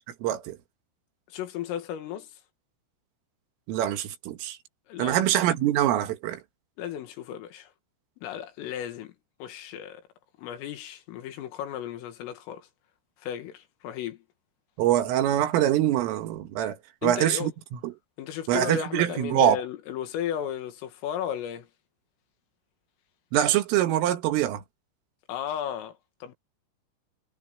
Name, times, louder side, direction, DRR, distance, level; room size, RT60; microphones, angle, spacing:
voice 1, 0.2-0.6 3.7-4.6 5.0-6.4 14.8-16.8 17.0-17.5 17.8-17.9 18.5-19.6 23.3-24.6, right 12 dB, 85° right, 4.3 m, -24 dB
voice 2, 1.3-2.3 4.9-5.3 6.8-7.7 8.2-9.1 9.4-10.0 10.4-12.7 13.2-14.2 17.0-17.5 18.2-21.7 25.3-26.3, left 10 dB, 85° left, 4.7 m, -35 dB
omnidirectional pair, 5.7 m